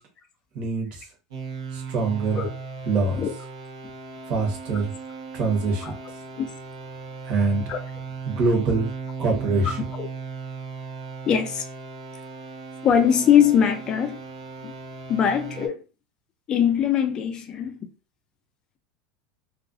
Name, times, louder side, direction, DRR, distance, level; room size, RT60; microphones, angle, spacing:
voice 1, 0.5-1.1 1.7-2.5 2.8-3.2 4.3-4.9 5.3-5.9 7.2-7.6 8.2-8.9 9.2-9.8, right 3 dB, 40° right, 1.0 m, -24 dB
sound 1, 1.3-15.7, right 5 dB, 85° right, 0.9 m, -37 dB
voice 2, 11.3-11.7 12.8-14.2 14.6-14.7 15.1-15.8 16.5-17.8, left 8 dB, 30° left, 0.4 m, -21 dB
2.3 x 2.2 x 2.4 m
supercardioid pair, 150°, 3 cm